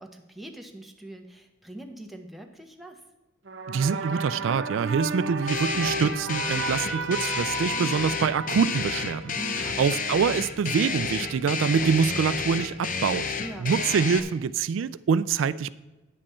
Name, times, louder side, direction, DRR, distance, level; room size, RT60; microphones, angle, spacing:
voice 1, 0.0-3.0 9.4-9.8 13.4-13.7, right 1 dB, ahead, 0.9 m, -43 dB
sound 1, 3.5-9.8, right 3 dB, 70° right, 0.9 m, -34 dB
voice 2, 3.7-9.4 9.8-13.3 13.6-15.7, right 6 dB, 85° right, 0.3 m, -25 dB
sound 2, 5.5-14.2, left 5 dB, 45° left, 0.7 m, -31 dB
9.5 x 7.5 x 4.3 m
head